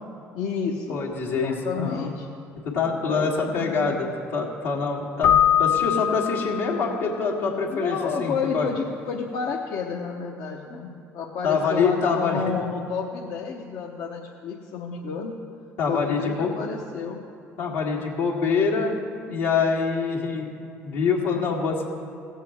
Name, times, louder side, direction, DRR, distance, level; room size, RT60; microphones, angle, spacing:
voice 1, 0.3-1.0 1.3-2.3 3.1-4.0 7.7-15.3 15.9-17.2, left 5 dB, 65° left, -2 dB, 0.9 m, -30 dB
voice 2, 0.9-2.1 2.6-5.3 5.6-8.7 11.4-12.5 15.8-16.5 17.6-19.0 19.3-20.5 20.8-21.8, left 5 dB, 85° left, -3 dB, 1.9 m, -25 dB
Keyboard (musical), 5.2-7.0, left 10 dB, 45° left, 0.4 m, -22 dB
17.5 x 7.4 x 3.6 m, 2.6 s
hypercardioid pair, 60°, 7 cm